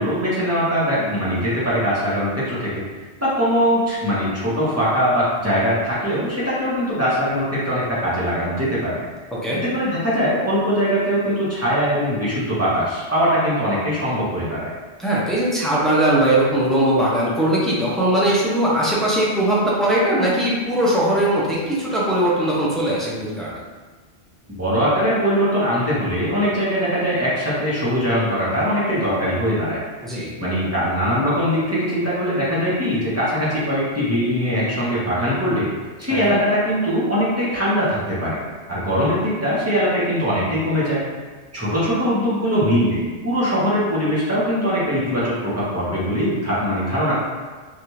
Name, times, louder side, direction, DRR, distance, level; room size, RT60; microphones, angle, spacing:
voice 1, 0.0-2.7 3.2-9.0 9.6-14.7 24.5-29.8 30.4-35.7 36.0-38.4 38.7-41.0 41.5-47.2, equal, 15° right, -9 dB, 0.9 m, -21 dB
voice 2, 15.0-23.5 30.0-30.3 36.1-36.4, right 1 dB, ahead, -7 dB, 0.4 m, -20 dB
3.3 x 2.5 x 2.9 m, 1.4 s
omnidirectional pair, 1.1 m